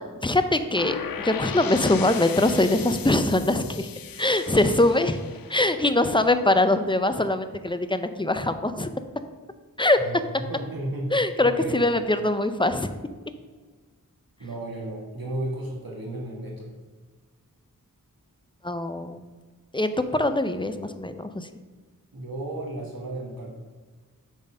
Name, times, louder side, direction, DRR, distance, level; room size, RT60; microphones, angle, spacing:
voice 1, 0.2-3.9 4.2-5.2 5.5-8.9 9.8-10.2 11.1-12.9 18.6-19.2 19.7-21.5, left 2 dB, 15° left, 10 dB, 0.5 m, -23 dB
sound 1, 0.8-6.6, left 8 dB, 85° left, 0.5 m, -37 dB
voice 2, 10.0-11.1 11.4-11.8 14.4-16.7 22.1-23.5, right 1 dB, 90° right, -3 dB, 1.6 m, -34 dB
7.0 x 4.0 x 5.4 m, 1.4 s
wide cardioid pair, 45°, 34 cm